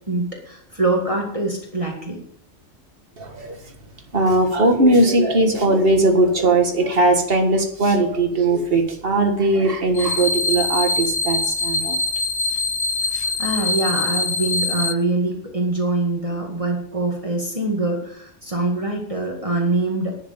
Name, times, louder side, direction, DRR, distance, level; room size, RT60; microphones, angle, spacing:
voice 1, 0.1-2.2 13.1-20.2, right 2 dB, 25° right, -1 dB, 2.0 m, -24 dB
voice 2, 3.2-3.6 4.1-12.0 13.1-13.3, right 2 dB, 45° right, 4 dB, 1.9 m, -19 dB
sound 1, 9.9-14.9, left 3 dB, 40° left, 0.4 m, -23 dB
11.0 x 6.6 x 7.2 m, 0.68 s
omnidirectional pair, 1.3 m